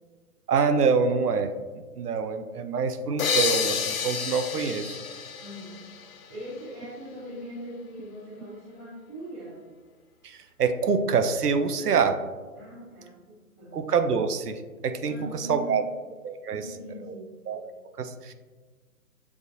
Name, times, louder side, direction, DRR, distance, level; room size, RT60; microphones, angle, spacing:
voice 1, 0.5-1.5 2.0-5.0 10.2-12.1 13.7-15.8 16.2-16.7 17.1-17.2 17.5-17.6 18.0-18.3, right 5 dB, 90° right, 8 dB, 0.6 m, -26 dB
sound 1, 3.2-6.7, left 6 dB, 65° left, 0.6 m, -30 dB
voice 2, 5.4-5.9 6.3-9.6 11.8-12.2 12.5-13.8 15.0-15.9 16.5-17.4, equal, 5° right, -13 dB, 0.5 m, -41 dB
7.0 x 2.5 x 2.6 m, 1.4 s
figure-of-eight pair, 140°, 45 cm